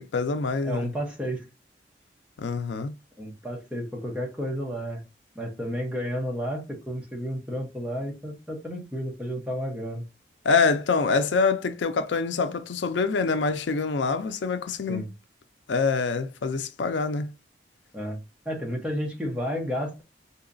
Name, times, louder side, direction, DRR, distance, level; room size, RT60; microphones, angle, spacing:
voice 1, 0.0-0.9 2.4-2.9 10.4-15.1 15.7-17.3, left 4 dB, 85° left, 0.5 m, -25 dB
voice 2, 0.6-1.4 3.2-5.0 5.4-10.0 14.9-15.1 17.9-18.2 18.4-20.0, equal, 5° right, 0.9 m, -31 dB
4.0 x 2.8 x 2.5 m
head